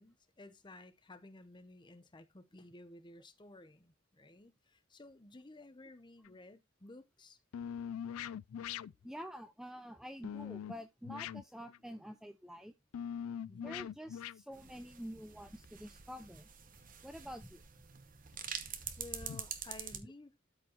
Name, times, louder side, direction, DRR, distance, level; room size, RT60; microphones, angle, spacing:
voice 1, 0.0-7.4 13.5-13.8 19.0-20.3, left 2 dB, 20° left, 0.8 m, -54 dB
sound 1, 6.2-6.4 7.5-9.1 10.2-10.7 11.0-11.8 12.9-14.4 15.6-15.7 18.3-18.4 19.3-19.4, left 8 dB, 85° left, 0.3 m, -42 dB
voice 2, 9.0-12.7 13.6-16.5 17.0-17.6 18.8-18.9 20.0-20.1, equal, ahead, 0.4 m, -48 dB
sound 2, 14.5-20.0, right 8 dB, 40° right, 0.9 m, -46 dB
12.5 x 4.5 x 3.0 m
head